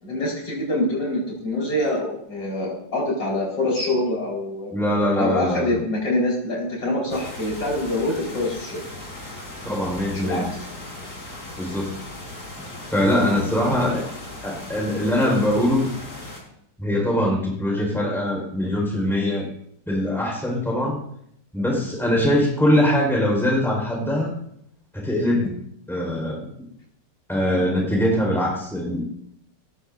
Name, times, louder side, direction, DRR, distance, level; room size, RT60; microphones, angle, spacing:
voice 1, 0.0-4.7 5.2-8.8 10.1-10.5 13.2-13.4, left 1 dB, 70° left, -3 dB, 5.5 m, -25 dB
voice 2, 4.7-5.8 9.6-10.5 11.6-11.9 12.9-14.1 14.4-15.9 16.8-19.5 19.9-21.0 21.5-24.3 24.9-25.6 25.9-26.5 27.3-29.0, left 1 dB, ahead, -2 dB, 4.8 m, -22 dB
sound 1, 7.1-16.4, left 2 dB, 40° left, 4.3 m, -38 dB
19.0 x 14.5 x 2.7 m, 0.71 s
omnidirectional pair, 2.0 m